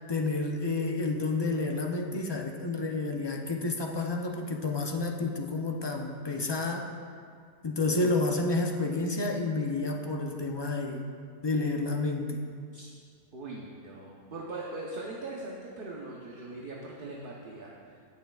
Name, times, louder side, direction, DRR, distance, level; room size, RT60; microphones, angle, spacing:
voice 1, 0.1-6.9 7.6-11.0 11.4-12.4, left 3 dB, 35° left, 2 dB, 0.4 m, -30 dB
voice 2, 13.3-18.0, right 2 dB, 50° right, -3 dB, 1.0 m, -41 dB
16.5 x 6.4 x 2.3 m, 2.2 s
omnidirectional pair, 1.3 m